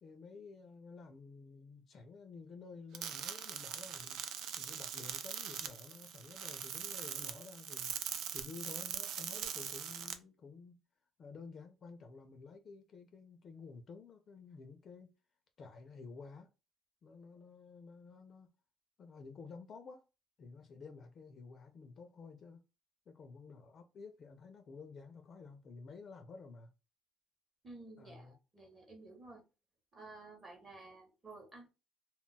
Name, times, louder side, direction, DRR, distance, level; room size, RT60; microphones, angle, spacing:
voice 1, 0.0-4.2 4.6-7.9 8.3-10.8 11.2-15.1 15.6-16.5 17.0-18.5 19.0-20.0 20.4-22.7 23.1-26.7 28.0-28.4, left 4 dB, 35° left, 0.4 m, -52 dB
sound 1, 2.9-10.1, right 9 dB, 70° right, 0.4 m, -42 dB
voice 2, 27.6-29.4 29.9-31.7, right 2 dB, 20° right, 0.8 m, -53 dB
2.2 x 2.0 x 3.8 m
cardioid pair, 165°, 0 cm